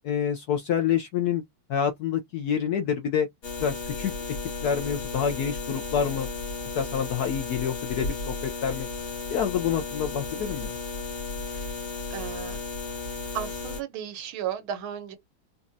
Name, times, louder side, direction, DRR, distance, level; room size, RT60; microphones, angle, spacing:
voice 1, 0.0-1.4 1.7-3.3 3.6-4.1 4.6-6.3 6.7-8.9 9.3-10.7, left 8 dB, 75° left, 0.9 m, -27 dB
sound 1, 3.4-13.8, left 4 dB, 40° left, 0.9 m, -34 dB
voice 2, 12.1-12.6 13.3-15.2, right 9 dB, 85° right, 1.7 m, -34 dB
4.1 x 2.3 x 2.6 m
omnidirectional pair, 2.2 m